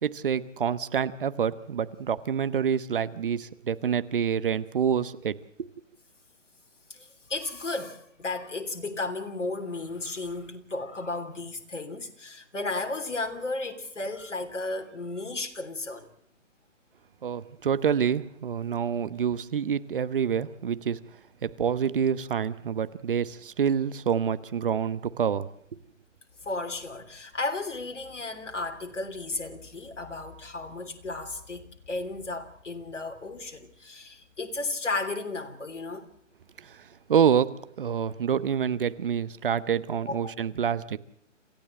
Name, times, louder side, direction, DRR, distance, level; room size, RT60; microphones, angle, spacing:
voice 1, 0.0-5.3 17.2-21.0 21.4-25.5 36.6-41.0, right 7 dB, 45° right, 1.1 m, -27 dB
voice 2, 6.9-16.1 26.4-36.1 40.0-40.3, left 2 dB, 70° left, 3.3 m, -34 dB
28.0 x 15.5 x 7.6 m
figure-of-eight pair, 140°, 38 cm